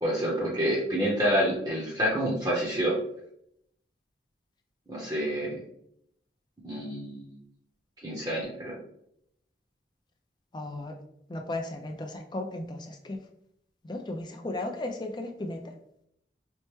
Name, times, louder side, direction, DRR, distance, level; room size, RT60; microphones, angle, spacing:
voice 1, 0.0-2.9 4.9-5.6 6.6-7.4 8.0-8.8, equal, 20° right, -4 dB, 0.7 m, -28 dB
voice 2, 10.5-10.9 11.3-13.2 13.9-15.6, left 2 dB, 25° left, 4 dB, 0.4 m, -35 dB
4.4 x 2.1 x 3.1 m, 0.74 s
head